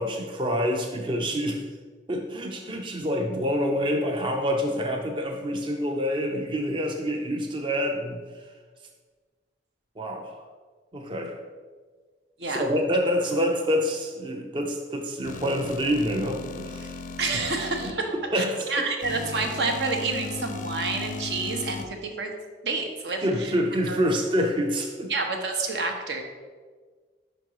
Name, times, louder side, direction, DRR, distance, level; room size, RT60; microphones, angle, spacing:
voice 1, 0.0-1.7 2.1-8.2 10.0-10.3 10.9-11.4 12.5-16.9 17.8-18.8 23.2-25.1, equal, 30° right, 3 dB, 0.5 m, -27 dB
sound 1, 15.2-17.9 19.0-21.8, left 4 dB, 45° left, 0.4 m, -36 dB
voice 2, 17.2-22.3 22.6-23.5 23.9-24.0 25.1-26.2, right 3 dB, 75° right, 3 dB, 0.9 m, -29 dB
5.4 x 5.2 x 4.6 m, 1.5 s
head